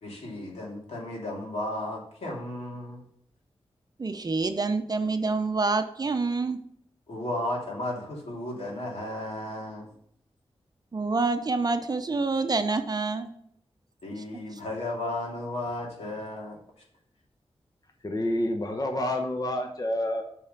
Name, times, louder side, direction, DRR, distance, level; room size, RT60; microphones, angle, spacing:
voice 1, 0.0-3.0 7.1-9.9 14.0-16.5, left 1 dB, 80° left, -3 dB, 2.8 m, -34 dB
voice 2, 4.0-6.6 10.9-13.3, right 3 dB, 40° right, 8 dB, 0.7 m, -27 dB
voice 3, 18.0-20.2, left 1 dB, 35° left, 3 dB, 1.0 m, -28 dB
5.6 x 5.4 x 6.6 m, 0.68 s
wide cardioid pair, 85°, 11 cm